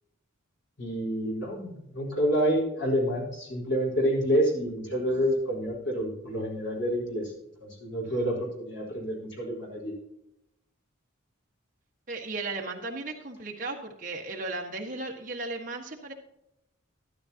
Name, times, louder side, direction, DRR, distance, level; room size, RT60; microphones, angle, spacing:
voice 1, 0.8-7.3 7.6-9.9, equal, 55° left, -3 dB, 4.6 m, -28 dB
voice 2, 12.1-16.1, right 3 dB, 40° right, 0 dB, 1.6 m, -36 dB
13.0 x 12.5 x 2.9 m, 0.87 s
head